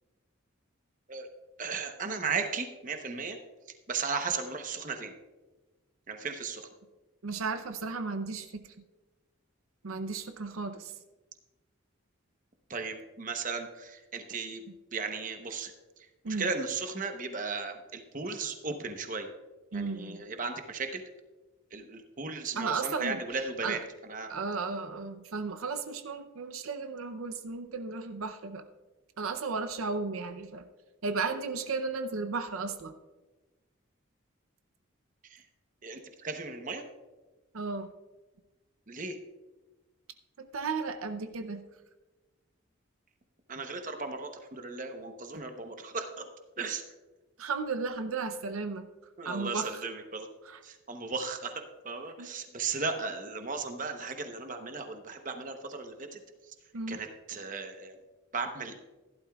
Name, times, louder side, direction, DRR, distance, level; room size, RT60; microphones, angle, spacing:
voice 1, 1.6-3.4 3.9-5.1 6.1-6.7 12.7-14.6 14.9-15.7 16.3-19.3 19.7-21.0 21.7-24.3 35.3-35.4 35.8-36.8 38.9-39.2 43.5-46.2 46.6-46.8 49.2-50.3 50.6-56.2 56.5-56.6 56.9-58.0 58.3-58.7, right 4 dB, 40° right, 6 dB, 0.9 m, -36 dB
voice 2, 7.2-8.6 9.8-10.9 16.2-16.5 19.7-20.3 22.6-23.2 23.6-23.8 24.3-28.6 29.2-30.7 31.0-32.9 37.5-37.9 40.4-41.6 47.4-48.9 49.2-49.8 50.4-50.6 52.2-52.3 56.7-57.0, right 4 dB, 80° right, 9 dB, 0.6 m, -34 dB
15.5 x 11.5 x 2.3 m, 1.2 s
head